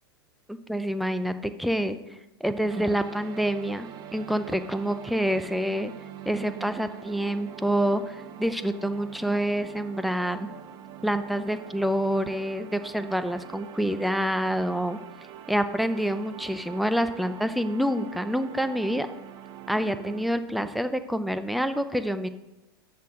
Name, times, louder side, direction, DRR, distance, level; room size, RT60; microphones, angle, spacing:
voice 1, 0.5-2.0 2.4-5.9 6.3-10.5 11.0-15.0 15.5-19.1 19.7-22.3, equal, ahead, 10 dB, 0.5 m, -27 dB
sound 1, 2.7-20.3, right 10 dB, 40° right, 0.7 m, -44 dB
10.5 x 7.7 x 3.7 m, 0.99 s
hypercardioid pair, 110°, 13 cm